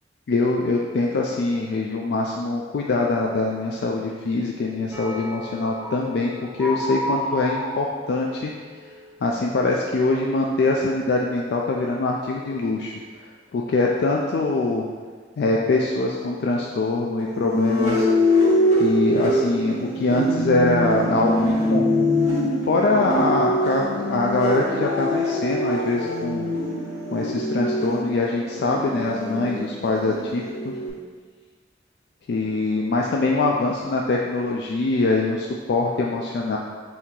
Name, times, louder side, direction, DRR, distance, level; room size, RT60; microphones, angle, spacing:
voice 1, 0.3-8.5 9.2-12.9 13.5-14.9 15.4-18.1 18.8-22.3 22.6-26.5 27.1-30.8 32.3-36.6, left 3 dB, 65° left, -1 dB, 0.3 m, -23 dB
sound 1, 4.9-10.7 11.0-11.3 11.7-11.9, left 1 dB, 10° right, 0.5 m, -33 dB
sound 2, 17.2-30.9, equal, 45° left, 1.4 m, -24 dB
4.3 x 2.8 x 3.7 m, 1.5 s
head